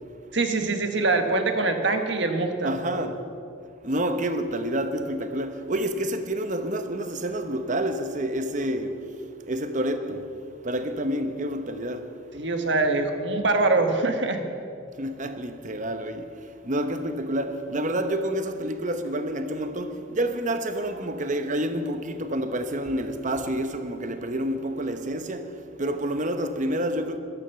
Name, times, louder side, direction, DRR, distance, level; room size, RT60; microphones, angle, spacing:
voice 1, 0.3-2.8 12.3-14.4, right 3 dB, 60° right, 1.5 m, -24 dB
voice 2, 2.6-3.2 3.8-9.0 9.5-10.3 10.6-12.1 15.0-16.3 16.6-27.2, right 1 dB, 40° right, 1.0 m, -28 dB
14.5 x 12.5 x 6.9 m
head